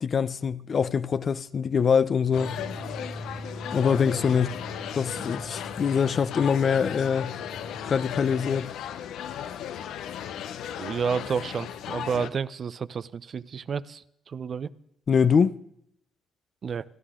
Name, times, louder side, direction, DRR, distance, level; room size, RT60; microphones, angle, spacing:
voice 1, 0.0-2.6 3.7-4.5 4.9-7.4 7.8-8.7 15.1-15.6, left 6 dB, 45° left, 0.6 m, -24 dB
sound 1, 2.3-12.3, left 9 dB, 85° left, 0.9 m, -36 dB
sound 2, 2.4-8.6, right 1 dB, 20° right, 1.6 m, -42 dB
voice 2, 10.8-14.7 16.6-16.8, right 6 dB, 50° right, 0.7 m, -31 dB
27.5 x 11.0 x 3.8 m
cardioid pair, 90°, 0 cm